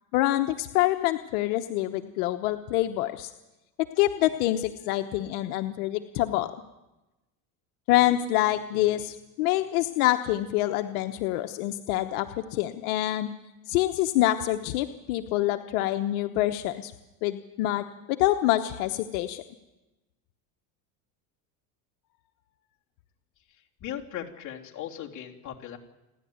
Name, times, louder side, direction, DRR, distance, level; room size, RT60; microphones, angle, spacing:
voice 1, 0.1-3.3 4.0-6.5 7.9-13.3 13.7-16.9 17.2-19.4, left 15 dB, 85° left, 7 dB, 1.1 m, -26 dB
voice 2, 23.8-25.8, left 10 dB, 40° left, -1 dB, 3.2 m, -38 dB
29.0 x 11.0 x 9.4 m, 1.0 s
supercardioid pair, 125°, 43 cm